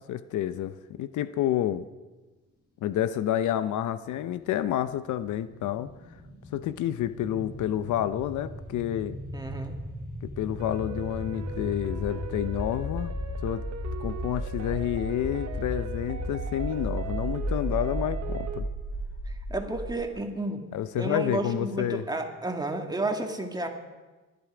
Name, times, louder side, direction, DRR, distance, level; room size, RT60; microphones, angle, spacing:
voice 1, 0.1-1.9 2.8-5.9 6.5-9.2 10.4-13.1 13.4-13.6 14.0-18.7 20.7-22.0, left 11 dB, 75° left, 13 dB, 0.7 m, -29 dB
sound 1, 4.1-20.0, equal, 35° left, 3.9 m, -35 dB
voice 2, 9.3-9.7 19.3-20.6 21.0-23.7, right 2 dB, 15° right, 3 dB, 2.2 m, -31 dB
sound 2, 10.6-18.6, right 7 dB, 65° right, 1.2 m, -40 dB
24.0 x 10.5 x 5.0 m, 1.2 s
cardioid pair, 90°, 30 cm